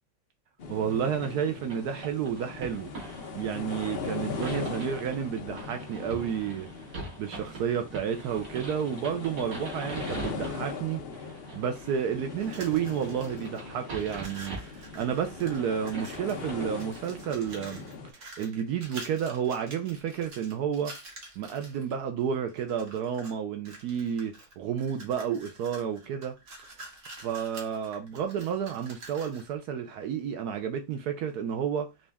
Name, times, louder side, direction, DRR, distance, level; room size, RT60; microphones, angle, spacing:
sound 1, 0.6-18.1, left 5 dB, 60° left, 0.6 m, -40 dB
voice 1, 0.7-2.9 3.3-6.7 7.2-11.0 11.5-17.8 18.2-20.9 21.4-26.3 27.2-31.9, right 8 dB, 70° right, 1.0 m, -31 dB
sound 2, 0.9-17.6, right 3 dB, 90° right, 2.5 m, -44 dB
sound 3, 12.3-13.6 13.9-16.5 16.8-21.9 22.5-23.4 23.6-29.5, right 2 dB, 50° right, 1.4 m, -47 dB
5.1 x 2.4 x 3.4 m
omnidirectional pair, 1.9 m